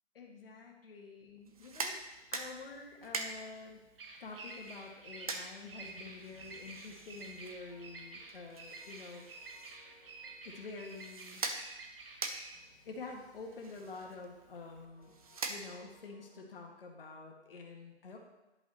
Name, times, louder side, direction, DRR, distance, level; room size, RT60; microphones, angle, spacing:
voice 1, 0.1-2.0 2.3-3.9 4.2-9.3 10.4-11.4 12.9-15.2 15.5-18.2, left 3 dB, 55° left, 0 dB, 1.8 m, -48 dB
sound 1, 1.4-16.1, right 3 dB, 35° right, 0.6 m, -45 dB
Bird vocalization bird call bird song, 1.6-14.8, right 3 dB, 55° right, 1.4 m, -51 dB
sound 2, 5.5-16.4, left 3 dB, 15° left, 0.9 m, -67 dB
10.5 x 5.4 x 4.3 m, 1.0 s
hypercardioid pair, 170°, 34 cm